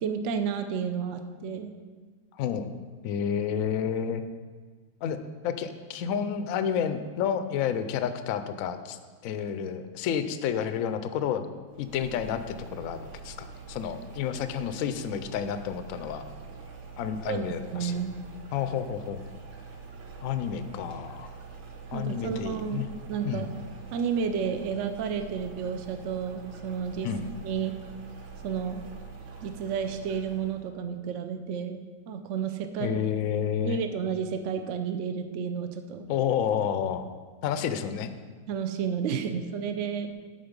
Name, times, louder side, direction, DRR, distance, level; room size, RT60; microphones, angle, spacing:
voice 1, 0.0-1.7 17.3-17.4 17.7-18.2 21.9-23.5 23.9-27.1 27.4-27.7 28.4-28.8 29.4-33.0 33.6-36.1 38.5-40.1, right 7 dB, 85° right, 7 dB, 0.6 m, -31 dB
voice 2, 2.4-2.7 3.0-4.2 5.0-11.5 11.8-16.3 17.0-18.0 18.5-19.2 20.2-21.3 21.9-22.8 23.2-23.4 27.0-27.3 32.8-33.8 36.1-37.1 37.4-38.1, left 8 dB, 75° left, 10 dB, 0.8 m, -30 dB
sound 1, 11.7-30.6, right 5 dB, 65° right, 1.5 m, -45 dB
11.5 x 4.3 x 5.2 m, 1.5 s
omnidirectional pair, 2.0 m